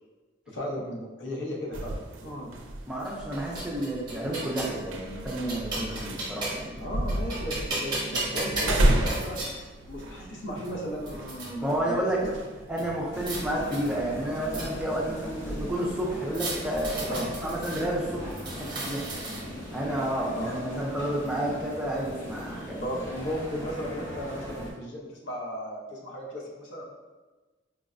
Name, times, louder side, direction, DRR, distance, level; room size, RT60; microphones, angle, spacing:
voice 1, 0.5-2.0 2.2-2.5 6.8-9.6 9.9-12.3 17.1-17.3 20.4-20.5 22.8-26.8, equal, 70° left, -3 dB, 0.7 m, -35 dB
sound 1, 1.7-18.1, right 1 dB, 75° right, 0.4 m, -34 dB
voice 2, 2.9-6.8 11.6-12.2 12.7-19.0 19.7-23.1, right 1 dB, 5° right, -5 dB, 0.4 m, -31 dB
sound 2, 3.0-4.8 5.3-6.7 7.1-9.5 10.3-10.4 10.6-11.5 12.8-13.4 13.7-15.0 16.3-17.8 18.3-19.6, right 2 dB, 20° right, 0.8 m, -35 dB
sound 3, 13.1-24.7, equal, 90° left, 1.1 m, -40 dB
4.6 x 2.1 x 2.5 m, 1.3 s
head